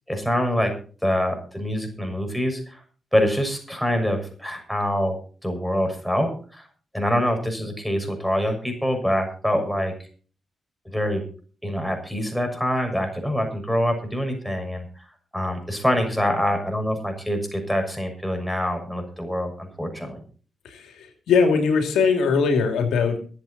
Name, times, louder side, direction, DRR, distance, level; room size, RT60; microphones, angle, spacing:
voice 1, 0.1-0.7 1.0-2.8 3.1-6.6 6.9-9.9 10.8-11.2 11.6-14.8 15.3-20.2, equal, 5° left, 4 dB, 6.5 m, -25 dB
voice 2, 20.6-23.2, left 5 dB, 85° left, 4 dB, 2.8 m, -21 dB
22.5 x 8.3 x 4.3 m, 0.41 s
supercardioid pair, 55°, 0 cm